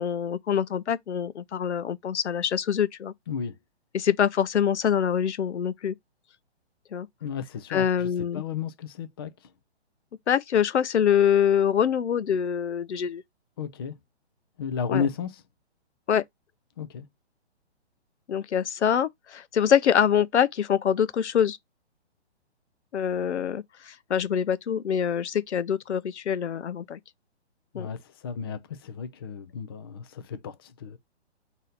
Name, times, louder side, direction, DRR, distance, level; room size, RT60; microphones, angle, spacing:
voice 1, 0.0-3.1 3.9-5.9 6.9-7.1 7.7-8.4 10.3-13.2 14.9-15.0 16.1-16.2 18.3-21.6 22.9-27.0 27.7-27.9, left 8 dB, 85° left, 0.5 m, -25 dB
voice 2, 7.2-9.3 13.6-14.0 14.6-15.4 16.8-17.1 27.7-31.0, left 6 dB, 20° left, 0.4 m, -33 dB
4.1 x 2.7 x 3.8 m
hypercardioid pair, 135°, 34 cm